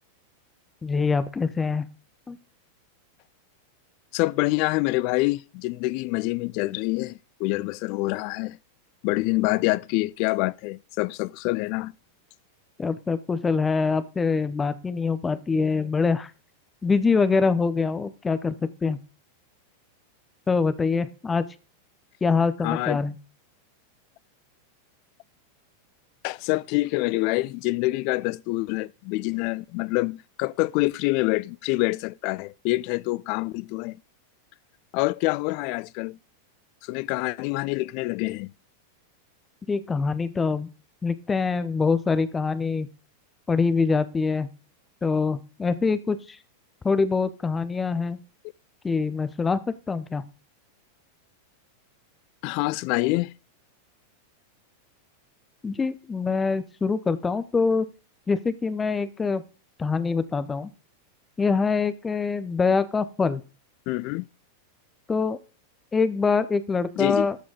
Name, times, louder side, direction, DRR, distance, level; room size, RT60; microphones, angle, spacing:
voice 1, 0.8-1.9 2.3-2.4 12.8-16.3 16.8-18.6 18.8-19.0 20.5-21.4 22.2-23.1 39.7-40.7 41.0-42.9 43.5-44.5 45.0-46.4 46.8-48.2 48.8-50.2 55.6-57.9 58.3-59.4 59.8-60.7 61.4-63.4 65.1-65.4 65.9-67.4, left 4 dB, 15° left, 0.8 m, -24 dB
voice 2, 4.1-8.6 9.0-11.9 22.6-23.0 26.2-34.0 34.9-36.2 36.8-38.5 52.4-53.3 63.9-64.3 67.0-67.3, left 21 dB, 45° left, 0.3 m, -26 dB
13.5 x 4.9 x 3.8 m
figure-of-eight pair, 90°, 0 cm